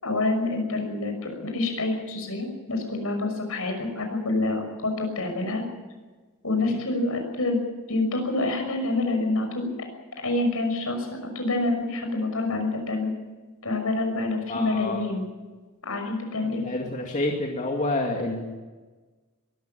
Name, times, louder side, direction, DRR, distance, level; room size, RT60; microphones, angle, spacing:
voice 1, 0.0-5.6 6.4-7.6 7.9-9.7 10.2-13.1 13.6-15.2 15.8-16.6, left 2 dB, 70° left, 4 dB, 6.1 m, -27 dB
voice 2, 14.5-15.0 16.6-18.5, left 2 dB, 35° left, 0 dB, 2.3 m, -28 dB
22.5 x 14.0 x 9.1 m, 1.3 s
head